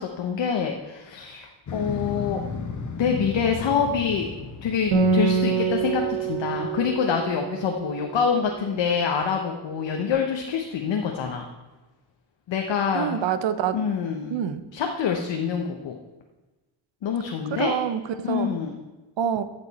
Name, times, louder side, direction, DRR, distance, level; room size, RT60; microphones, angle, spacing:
voice 1, 0.0-2.4 3.0-4.3 4.6-11.5 12.5-13.3 13.7-14.4 14.7-16.0 17.0-17.8 18.2-18.8, left 6 dB, 65° left, 2 dB, 1.0 m, -26 dB
Motorcycle, 1.7-6.9, left 4 dB, 40° left, 1.1 m, -35 dB
Acoustic guitar, 4.9-8.6, right 5 dB, 85° right, 2.0 m, -26 dB
voice 2, 12.9-13.8 14.3-14.6 17.5-18.5 19.2-19.4, right 9 dB, 65° right, 12 dB, 0.8 m, -26 dB
14.5 x 5.2 x 4.1 m, 1.2 s
cardioid pair, 90°, 48 cm